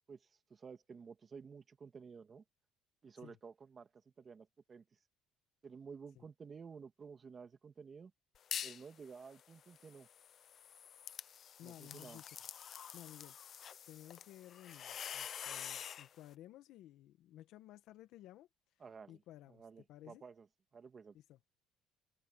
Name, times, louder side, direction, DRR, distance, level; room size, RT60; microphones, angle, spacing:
voice 1, 0.1-2.4 3.0-4.8 5.6-8.1 8.6-10.1 11.6-12.2 18.8-19.2 19.5-20.5 20.7-21.2, right 5 dB, 30° right, 2.0 m, -53 dB
sound 1, 8.3-8.9 9.3-16.1, left 9 dB, 40° left, 0.7 m, -47 dB
voice 2, 11.6-12.4 12.7-13.4 13.9-18.5 19.1-19.6 19.9-20.2 21.1-21.4, left 13 dB, 65° left, 1.8 m, -56 dB
cardioid pair, 135°, 0 cm